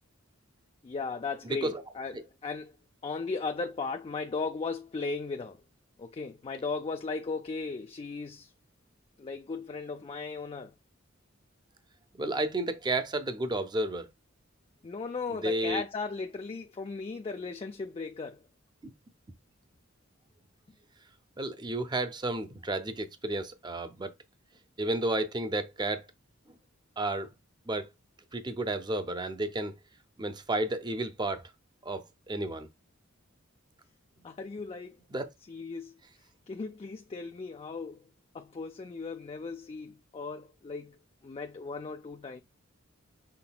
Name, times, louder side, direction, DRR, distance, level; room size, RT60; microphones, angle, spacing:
voice 1, 0.8-2.7 3.0-5.6 6.0-8.5 9.2-10.7 14.8-18.4 34.2-35.0 35.5-35.9 36.5-38.0 38.3-42.4, left 4 dB, 30° left, 0.4 m, -37 dB
voice 2, 12.2-14.1 15.4-15.8 21.4-24.1 24.8-26.1 27.0-27.3 27.7-27.9 28.3-29.7 30.2-31.4 31.8-32.7 35.1-35.3, right 2 dB, 20° right, 0.6 m, -32 dB
5.9 x 3.7 x 2.3 m
head